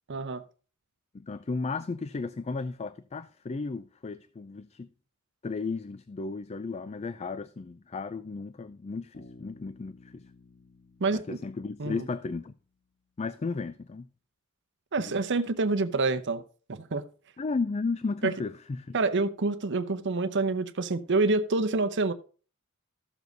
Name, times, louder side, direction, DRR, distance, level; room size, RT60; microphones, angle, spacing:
voice 1, 0.1-0.4 11.0-11.4 11.8-12.0 14.9-16.4 16.7-17.0 18.2-18.3 18.9-22.1, right 3 dB, 55° right, 0.7 m, -27 dB
voice 2, 1.1-4.9 5.4-10.2 11.1-12.5 13.2-14.1 15.0-15.2 17.4-19.0, left 4 dB, 30° left, 0.4 m, -34 dB
Bass guitar, 9.1-12.8, left 2 dB, 50° left, 2.2 m, -55 dB
13.5 x 7.2 x 3.9 m
head